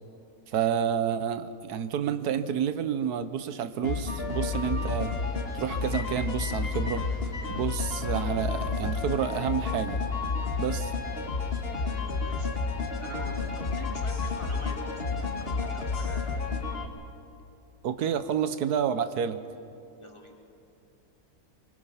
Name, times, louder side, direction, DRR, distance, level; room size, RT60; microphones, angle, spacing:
voice 1, 0.5-5.1 5.5-7.0 7.5-10.0 10.6-10.9 17.8-19.4, right 8 dB, 90° right, 11 dB, 1.4 m, -29 dB
sound 1, 3.8-16.9, left 4 dB, 40° left, 1.8 m, -31 dB
voice 2, 11.7-12.5 13.0-16.4 20.0-20.4, equal, 20° left, 0 dB, 2.5 m, -44 dB
24.5 x 24.5 x 5.7 m, 2.7 s
omnidirectional pair, 1.6 m